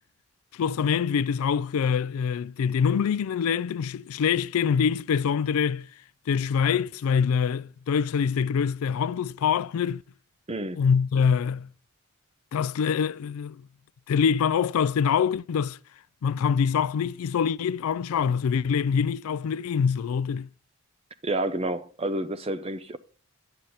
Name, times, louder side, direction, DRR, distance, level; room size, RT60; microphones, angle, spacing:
voice 1, 0.5-5.9 6.3-10.0 10.8-11.7 12.5-13.6 14.1-15.8 16.2-20.5, left 7 dB, 80° left, 0.3 m, -25 dB
voice 2, 10.5-10.8 21.2-23.0, right 2 dB, 25° right, 0.6 m, -29 dB
10.5 x 7.8 x 4.1 m
head